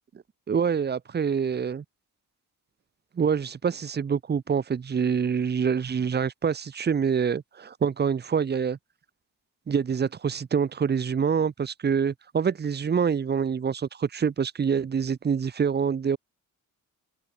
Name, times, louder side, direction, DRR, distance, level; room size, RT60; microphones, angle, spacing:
voice 1, 0.5-1.8 3.2-8.8 9.7-16.2, right 6 dB, 30° right, 1.9 m, -26 dB
open air
cardioid pair, 170°, 34 cm